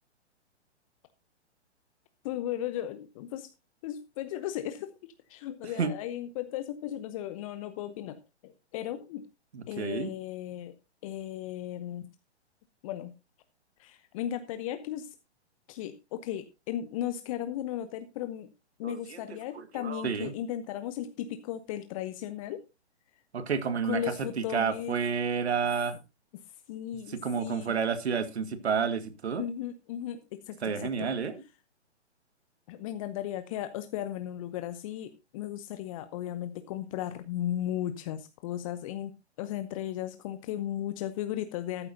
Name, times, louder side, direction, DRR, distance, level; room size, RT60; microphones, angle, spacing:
voice 1, 2.2-3.5 3.8-4.9 5.3-9.3 9.7-10.7 11.0-12.1 12.8-13.1 13.8-15.1 15.7-18.5 18.8-22.6 23.8-25.0 26.7-27.8 29.4-31.1 32.7-41.9, left 11 dB, 30° left, 0.8 m, -36 dB
voice 2, 9.5-10.1 18.8-19.2 19.6-20.3 23.3-24.0 24.4-26.0 27.2-29.4 30.6-31.4, right 6 dB, 65° right, 1.8 m, -30 dB
13.5 x 12.0 x 2.7 m
figure-of-eight pair, 125°, 35 cm